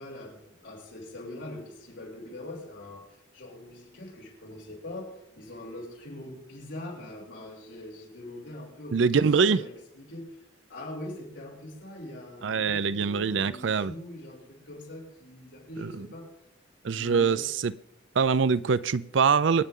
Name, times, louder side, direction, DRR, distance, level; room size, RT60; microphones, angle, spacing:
voice 1, 0.0-10.4 10.7-16.3 16.9-17.5, left 1 dB, 75° left, 6.4 m, -42 dB
voice 2, 8.9-9.6 12.4-13.9 16.8-17.7 18.2-19.6, right 5 dB, 75° right, 0.5 m, -23 dB
26.0 x 9.1 x 3.8 m
head